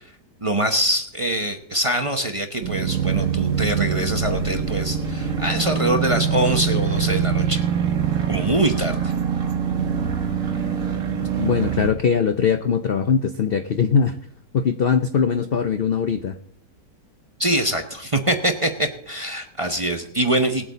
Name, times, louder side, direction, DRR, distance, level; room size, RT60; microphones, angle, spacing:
voice 1, 0.4-7.6 8.3-9.1 17.4-20.7, right 1 dB, 25° right, 4 dB, 0.7 m, -24 dB
sound 1, 2.6-11.9, right 7 dB, 50° right, 1.8 m, -24 dB
voice 2, 11.1-14.2 14.5-16.4, left 6 dB, 70° left, 8 dB, 0.5 m, -21 dB
20.0 x 8.1 x 4.1 m, 0.67 s
omnidirectional pair, 1.8 m